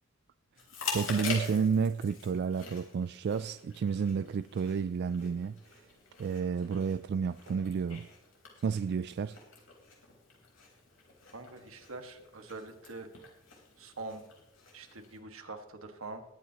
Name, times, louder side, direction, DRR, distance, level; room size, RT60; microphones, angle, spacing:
Chewing mastication, 0.6-15.2, left 4 dB, 70° left, 4.0 m, -45 dB
voice 1, 0.9-5.6 6.2-8.1 8.6-9.4, right 6 dB, 55° right, 0.3 m, -31 dB
voice 2, 11.3-13.1 13.8-14.2 14.7-16.2, right 3 dB, 90° right, 1.7 m, -44 dB
21.5 x 9.3 x 2.9 m
head